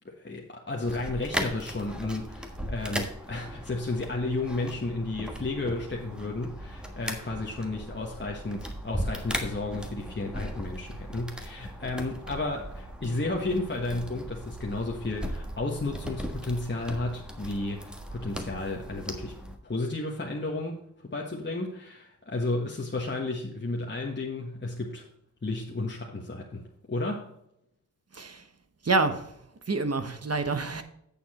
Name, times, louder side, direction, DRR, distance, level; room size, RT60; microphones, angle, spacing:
voice 1, 0.0-19.3 19.6-20.8 21.0-25.1 25.4-27.3, left 2 dB, 35° left, -1 dB, 1.3 m, -33 dB
sound 1, 0.8-19.6, equal, 5° right, 1.4 m, -38 dB
voice 2, 28.1-28.5 28.8-29.4 29.7-30.8, right 3 dB, 55° right, 9 dB, 1.1 m, -27 dB
8.6 x 7.0 x 4.2 m, 0.77 s
wide cardioid pair, 75°, 30 cm